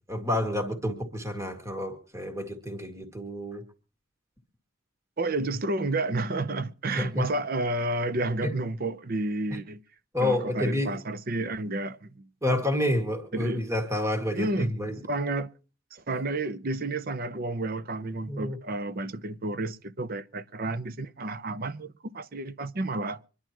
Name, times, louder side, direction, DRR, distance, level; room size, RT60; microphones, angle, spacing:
voice 1, 0.1-3.6 7.0-7.3 8.4-8.5 10.1-11.0 12.4-15.0 18.3-18.6, left 1 dB, 15° right, 2.1 m, -29 dB
voice 2, 5.2-9.8 10.2-12.3 13.3-13.7 14.3-14.7 15.0-15.5 15.9-23.2, right 2 dB, 50° right, 0.7 m, -31 dB
25.5 x 11.0 x 3.0 m
head